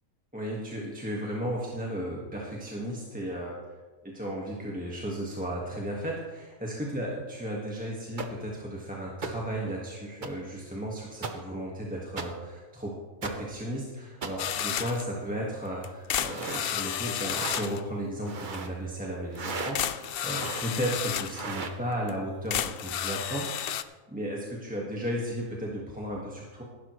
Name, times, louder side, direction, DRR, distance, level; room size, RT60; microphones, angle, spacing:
voice 1, 0.3-3.7 4.0-12.9 13.2-26.6, equal, 5° right, -4 dB, 1.6 m, -34 dB
sound 1, 8.2-8.3 9.2-9.3 10.2-10.3 11.2-11.3 12.2-12.3 13.2-13.3 14.2-14.3 16.2-16.7 17.3-17.6 18.2-18.7 19.3-19.7 20.3-20.7 21.3-21.8, right 4 dB, 40° right, 1.0 m, -35 dB
sound 2, 14.4-15.1 15.8-17.8 19.4-19.5 19.8-21.4 22.1-22.2 22.5-23.8, left 10 dB, 70° left, 0.5 m, -32 dB
15.5 x 11.5 x 3.2 m, 1.3 s
omnidirectional pair, 1.5 m